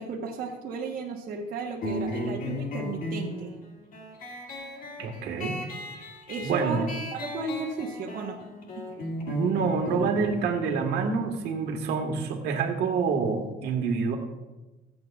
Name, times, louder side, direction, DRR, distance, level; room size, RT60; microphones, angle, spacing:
voice 1, 0.0-3.5 6.3-8.4 8.7-9.1, right 4 dB, 60° right, -1 dB, 1.2 m, -34 dB
sound 1, 1.8-12.9, left 1 dB, 55° left, 2.2 m, -37 dB
voice 2, 5.0-5.6 6.4-6.9 9.3-14.2, right 5 dB, 75° right, 4 dB, 1.5 m, -27 dB
21.5 x 7.8 x 2.4 m, 1.1 s
cardioid pair, 110°, 17 cm